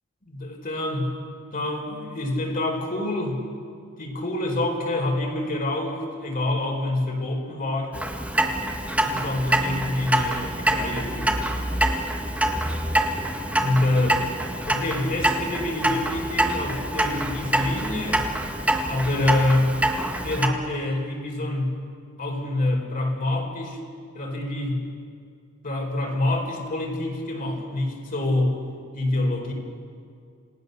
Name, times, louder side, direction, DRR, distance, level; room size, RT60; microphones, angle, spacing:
voice 1, 0.3-1.2 1.5-3.4 4.0-7.9 9.0-11.5 13.6-14.2 14.7-18.3 18.7-21.8 22.2-23.8 24.1-24.9 25.6-28.6 28.9-29.5, left 1 dB, 40° left, 1 dB, 4.3 m, -26 dB
Clock, 7.9-20.5, right 1 dB, 5° right, 1.7 m, -25 dB
28.5 x 18.5 x 6.8 m, 2.3 s
head